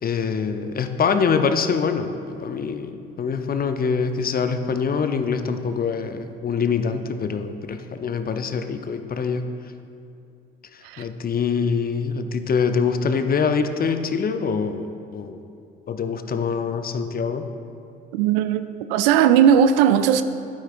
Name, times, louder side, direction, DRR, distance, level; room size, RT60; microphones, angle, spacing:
voice 1, 0.0-9.4 10.7-14.9 15.1-15.4 15.9-17.5, left 5 dB, 30° left, 8 dB, 0.6 m, -24 dB
voice 2, 18.1-20.2, right 9 dB, 65° right, 12 dB, 0.5 m, -17 dB
13.0 x 9.0 x 2.5 m, 2.6 s
figure-of-eight pair, 50°, 31 cm